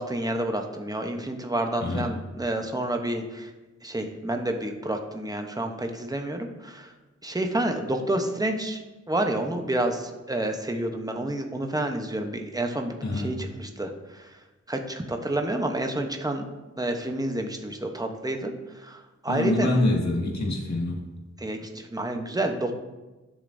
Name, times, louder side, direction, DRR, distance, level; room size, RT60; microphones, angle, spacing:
voice 1, 0.0-3.5 3.8-6.9 7.2-8.8 9.1-14.2 14.7-16.4 16.8-18.5 18.8-19.8 21.4-22.7, right 1 dB, 15° right, 4 dB, 0.9 m, -29 dB
voice 2, 13.0-13.3 19.3-21.0, left 2 dB, 70° left, -1 dB, 1.7 m, -25 dB
12.5 x 6.9 x 2.7 m, 1.1 s
wide cardioid pair, 95°, 29 cm